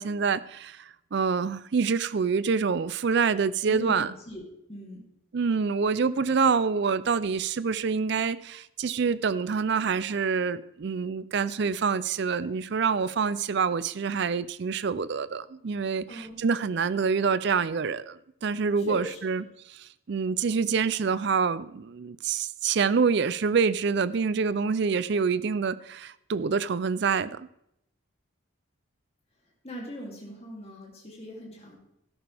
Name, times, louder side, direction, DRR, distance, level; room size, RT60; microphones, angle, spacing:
voice 1, 0.0-4.1 5.3-27.5, right 5 dB, 55° right, 0.4 m, -26 dB
voice 2, 3.7-4.4 4.7-5.0 16.1-16.4 17.1-17.3 18.8-19.4 29.6-31.8, equal, 30° left, 2.9 m, -40 dB
13.0 x 11.5 x 3.4 m
head